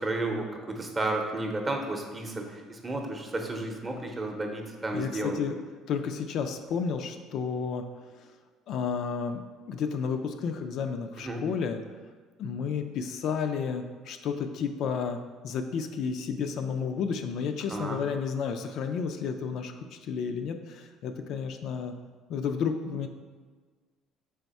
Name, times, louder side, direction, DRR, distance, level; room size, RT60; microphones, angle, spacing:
voice 1, 0.0-5.4 11.2-11.4 17.7-18.0, right 2 dB, 25° right, 2 dB, 0.7 m, -32 dB
voice 2, 4.9-5.6 5.9-7.8 8.7-9.4 9.7-11.8 12.4-15.2 15.4-21.9 22.3-23.1, left 6 dB, 65° left, 6 dB, 0.3 m, -31 dB
3.5 x 3.4 x 4.1 m, 1.4 s
supercardioid pair, 95°, 0 cm